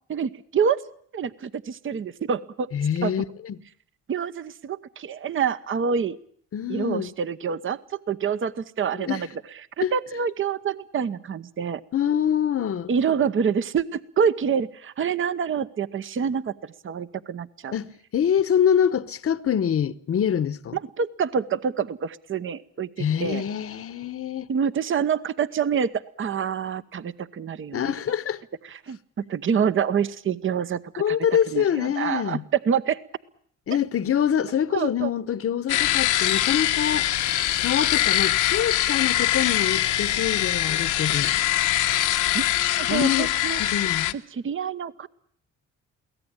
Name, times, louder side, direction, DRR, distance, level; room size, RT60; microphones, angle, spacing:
voice 1, 0.1-0.8 1.1-2.7 3.0-3.1 4.1-6.2 6.7-9.3 9.8-11.8 12.9-16.5 16.8-17.7 20.7-23.4 24.5-27.9 28.6-31.2 31.5-32.4 32.6-33.0 34.7-35.1 42.3-42.4 42.8-43.6 44.3-45.1, right 7 dB, 40° right, 0.9 m, -27 dB
voice 2, 2.7-3.6 6.5-7.1 8.9-9.3 9.8-9.9 11.9-12.9 17.7-20.8 23.0-24.5 27.7-28.4 31.0-32.4 33.7-37.1 37.6-41.3 42.9-43.3 43.6-44.2, left 9 dB, 50° left, 1.0 m, -25 dB
sound 1, 35.7-44.1, left 13 dB, 80° left, 1.2 m, -23 dB
23.5 x 17.0 x 8.8 m
cardioid pair, 90°, 30 cm